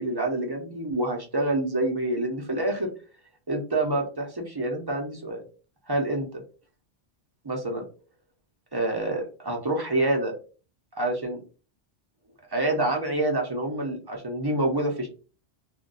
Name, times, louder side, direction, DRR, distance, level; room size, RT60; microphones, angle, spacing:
voice 1, 0.0-2.9 3.5-5.4 5.9-6.3 7.4-7.8 8.7-10.3 11.0-11.4 12.5-15.1, right 2 dB, 25° right, 0 dB, 0.6 m, -27 dB
2.5 x 2.2 x 3.8 m, 0.36 s
omnidirectional pair, 1.1 m